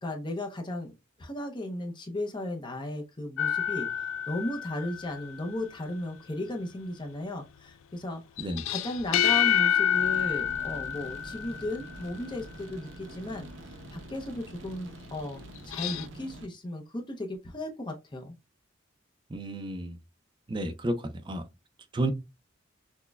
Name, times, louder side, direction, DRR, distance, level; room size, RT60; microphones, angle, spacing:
voice 1, 0.0-0.9 1.2-13.5 13.9-18.3, left 1 dB, 25° left, 0.6 m, -35 dB
sound 1, 3.4-5.4 8.4-12.0 15.6-16.1, left 10 dB, 80° left, 0.3 m, -28 dB
sound 2, 9.9-16.5, right 1 dB, 70° right, 0.6 m, -46 dB
voice 2, 19.3-20.0 20.5-21.4 21.9-22.1, right 1 dB, 25° right, 0.4 m, -31 dB
6.0 x 2.2 x 2.2 m
head